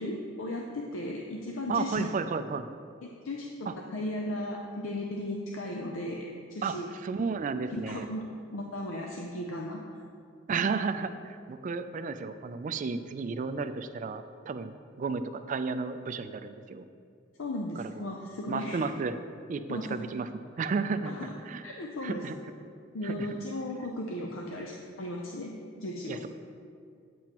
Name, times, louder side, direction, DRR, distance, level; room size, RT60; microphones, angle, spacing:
voice 1, 0.0-2.1 3.0-6.9 7.7-8.3 8.5-9.8 17.4-18.8 19.7-19.9 21.0-21.3 21.6-22.2 22.9-26.3, left 1 dB, 85° left, 1 dB, 0.6 m, -36 dB
voice 2, 1.7-2.7 3.7-3.8 6.6-8.1 10.5-16.9 17.8-18.1 18.5-19.2 19.5-20.3 20.6-21.1 21.5-21.6 22.0-22.4 23.0-23.4 26.1-26.3, right 4 dB, 40° right, 10 dB, 0.3 m, -33 dB
9.1 x 7.6 x 3.0 m, 2.3 s
head